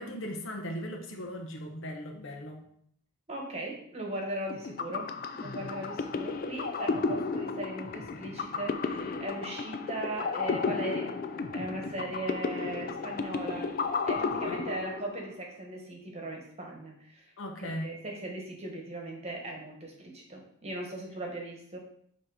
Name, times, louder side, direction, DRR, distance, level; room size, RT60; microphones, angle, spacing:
voice 1, 0.0-2.7 14.5-14.6 17.4-17.9, equal, 60° left, 3 dB, 0.9 m, -38 dB
voice 2, 3.3-11.2 11.5-13.7 14.0-17.3 17.7-21.8, right 1 dB, 30° right, 0 dB, 1.2 m, -38 dB
sound 1, 4.5-15.3, left 4 dB, 40° left, 0.4 m, -33 dB
7.4 x 3.0 x 4.8 m, 0.67 s
head